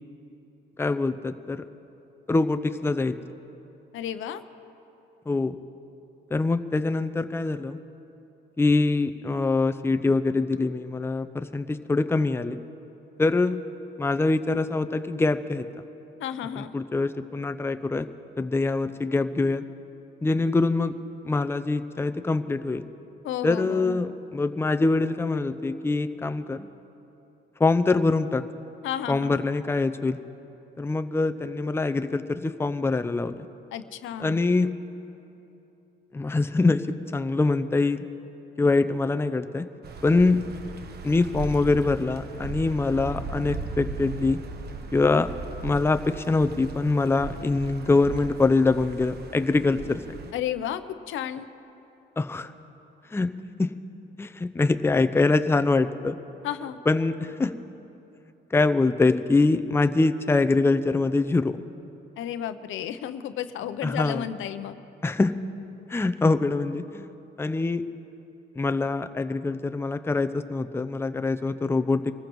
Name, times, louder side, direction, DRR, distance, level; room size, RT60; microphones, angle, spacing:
voice 1, 0.8-1.6 2.3-3.1 5.3-5.6 6.3-7.8 8.6-12.6 13.2-13.6 14.0-15.6 16.6-18.1 18.4-19.6 20.2-20.9 21.2-22.9 23.4-26.7 27.6-28.4 29.1-30.2 30.8-33.5 34.2-34.7 36.1-38.1 38.6-39.7 40.0-40.4 41.0-44.4 44.9-45.3 45.6-50.0 52.2-52.5 53.1-53.7 54.2-56.2 56.9-57.5 58.5-61.5 63.8-64.2 65.0-65.3 65.9-67.1 67.4-67.8 68.6-72.1, left 3 dB, 10° left, 9 dB, 0.5 m, -24 dB
voice 2, 3.9-4.4 16.2-16.7 23.2-24.0 28.8-29.4 33.7-34.4 50.3-51.5 56.4-56.8 62.2-64.8, left 10 dB, 80° left, 11 dB, 0.7 m, -32 dB
sound 1, 39.8-50.3, right 3 dB, 55° right, 1.0 m, -38 dB
24.5 x 14.5 x 3.1 m, 2.9 s
cardioid pair, 90°, 20 cm